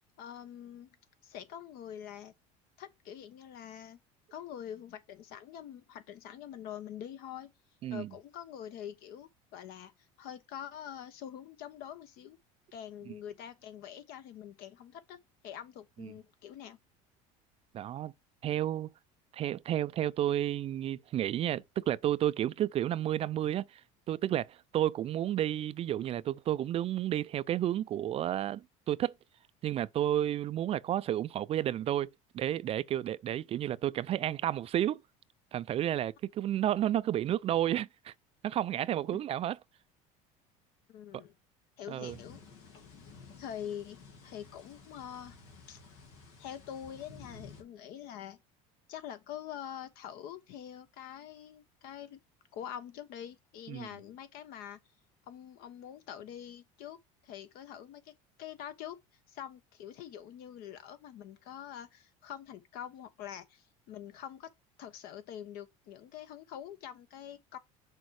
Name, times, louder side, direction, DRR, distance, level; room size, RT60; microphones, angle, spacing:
voice 1, 0.2-1.0 1.2-2.3 2.8-4.0 4.3-7.5 7.9-9.9 10.2-12.4 12.7-15.2 15.4-16.8 39.1-39.2 40.9-41.3 41.8-42.4 43.4-45.4 45.7-45.8 46.4-48.4 48.9-52.2 52.5-54.8 55.3-57.0 57.2-59.0 59.3-64.5 64.8-67.6, left 10 dB, 65° left, 1.2 m, -45 dB
voice 2, 17.7-18.1 18.4-18.9 19.3-23.8 24.1-29.1 29.6-32.1 32.3-35.0 35.5-38.1 38.4-39.6 41.1-41.2 41.9-42.2 53.7-53.9, right 12 dB, 35° right, 0.4 m, -31 dB
sound 1, 42.0-47.6, left 4 dB, 85° left, 2.7 m, -53 dB
6.4 x 4.2 x 4.7 m
supercardioid pair, 115°, 17 cm